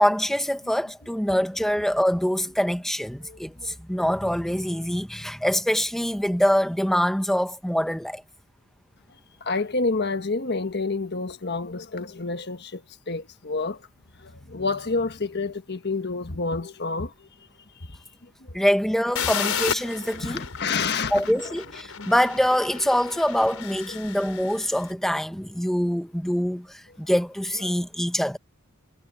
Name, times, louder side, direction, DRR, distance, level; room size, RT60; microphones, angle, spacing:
voice 1, 0.0-8.2 18.5-20.4 21.1-28.4, equal, ahead, 0.9 m, -24 dB
voice 2, 9.4-13.8 14.2-17.3 17.7-18.0 18.4-18.5 20.2-21.2 22.0-22.1 27.7-27.8, left 3 dB, 50° left, 1.4 m, -29 dB
sound 1, 19.2-24.8, left 8 dB, 75° left, 4.8 m, -33 dB
head